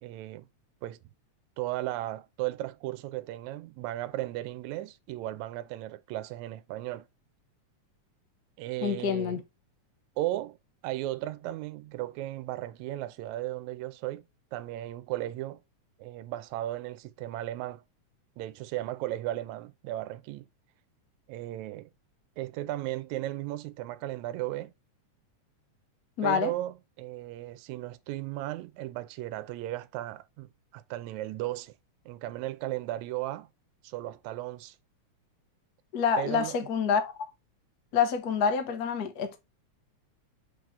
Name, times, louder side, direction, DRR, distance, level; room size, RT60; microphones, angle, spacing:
voice 1, 0.0-0.5 0.8-1.0 1.6-7.1 8.6-9.4 10.2-10.6 10.8-14.3 14.5-15.6 16.0-17.8 18.4-20.5 21.3-21.9 22.4-24.7 26.2-31.8 32.1-33.5 33.8-34.8 36.2-36.6, right 15 dB, 80° right, 1.9 m, -35 dB
voice 2, 8.8-9.4 26.2-26.5 35.9-37.1 37.9-39.4, left 7 dB, 80° left, 0.8 m, -27 dB
6.4 x 4.6 x 3.2 m
omnidirectional pair, 3.5 m